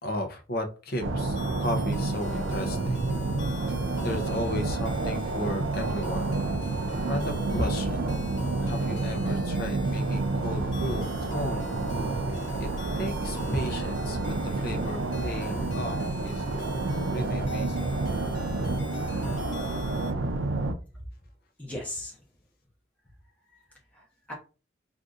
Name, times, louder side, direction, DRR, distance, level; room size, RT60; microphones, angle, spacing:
voice 1, 0.0-3.0 4.0-6.4 7.0-8.1 8.6-12.2 12.6-12.7 12.9-16.6 17.1-17.9, equal, 55° left, 3 dB, 0.7 m, -34 dB
sound 1, 1.0-20.7, right 2 dB, 80° right, 0.5 m, -29 dB
sound 2, 1.4-20.1, left 4 dB, 70° left, 1.1 m, -46 dB
voice 2, 20.6-21.0 21.6-22.2 23.5-24.3, left 1 dB, 10° left, -3 dB, 1.0 m, -40 dB
3.7 x 2.5 x 2.5 m, 0.34 s
head